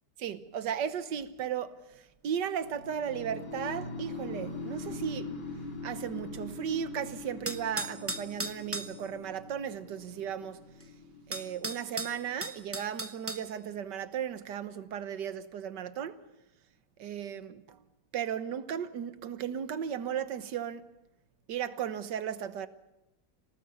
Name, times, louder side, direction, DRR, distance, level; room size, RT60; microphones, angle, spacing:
voice 1, 0.2-1.8 2.2-5.3 5.8-10.6 11.3-16.2 17.0-17.8 18.1-20.8 21.5-22.7, right 8 dB, 85° right, 1.7 m, -35 dB
sound 1, 2.6-12.6, left 3 dB, 85° left, 3.2 m, -42 dB
sound 2, 7.5-9.0 10.8-10.9 11.3-13.5, right 2 dB, 10° right, 0.6 m, -36 dB
26.5 x 18.0 x 7.1 m
omnidirectional pair, 1.8 m